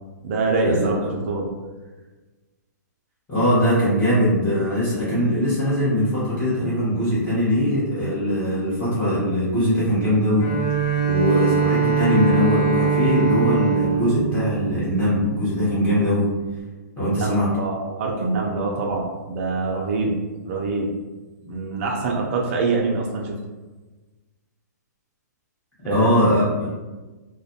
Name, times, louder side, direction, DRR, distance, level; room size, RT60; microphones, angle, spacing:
voice 1, 0.2-1.5 17.0-20.1 20.4-20.9 21.4-23.4 25.9-26.1, right 3 dB, 45° right, -2 dB, 0.4 m, -25 dB
voice 2, 3.3-10.5 11.0-16.3 17.0-17.5 25.8-26.7, equal, 15° left, -12 dB, 1.0 m, -21 dB
Bowed string instrument, 10.4-15.5, right 6 dB, 35° left, 0.5 m, -22 dB
2.5 x 2.1 x 2.6 m, 1.2 s
hypercardioid pair, 150°, 10 cm